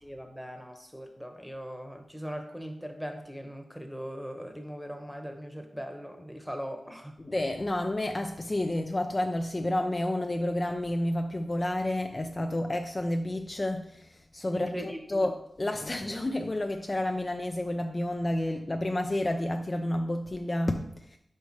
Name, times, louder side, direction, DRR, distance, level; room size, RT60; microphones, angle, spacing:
voice 1, 0.0-7.1 14.5-15.2, equal, 5° right, 4 dB, 1.0 m, -40 dB
voice 2, 7.2-14.0 14.3-21.2, left 1 dB, 35° left, 4 dB, 0.5 m, -30 dB
4.7 x 4.3 x 4.6 m, 0.72 s
cardioid pair, 50°, 0 cm